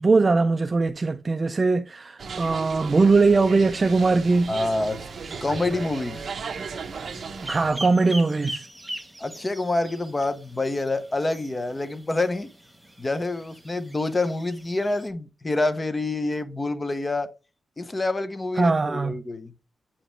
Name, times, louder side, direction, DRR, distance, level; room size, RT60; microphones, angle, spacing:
voice 1, 0.0-4.5 7.5-8.7 18.6-19.1, right 3 dB, 25° right, 0.3 m, -21 dB
sound 1, 2.2-7.7, right 5 dB, 50° right, 0.9 m, -36 dB
sound 2, 3.8-15.1, right 1 dB, 5° right, 1.0 m, -42 dB
voice 2, 4.5-5.0 5.4-6.2 9.2-12.5 13.0-17.3 17.8-19.5, left 2 dB, 20° left, 0.7 m, -27 dB
8.5 x 5.1 x 3.2 m
wide cardioid pair, 175°, 0 cm